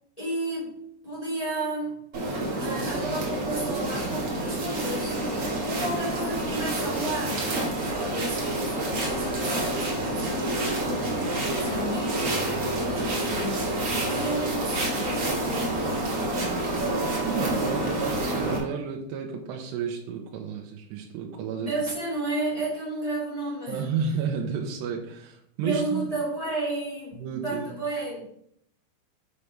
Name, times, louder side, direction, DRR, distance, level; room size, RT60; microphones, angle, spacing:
voice 1, 0.2-2.0 2.6-5.1 5.6-16.4 21.6-23.9 25.6-28.3, right 2 dB, 15° left, -9 dB, 1.1 m, -33 dB
sound 1, 2.1-18.6, right 1 dB, 45° right, 2.1 m, -28 dB
voice 2, 17.2-21.7 23.7-26.1 27.2-27.6, right 6 dB, 80° right, 1 dB, 2.8 m, -32 dB
6.7 x 5.8 x 5.0 m, 0.71 s
omnidirectional pair, 5.3 m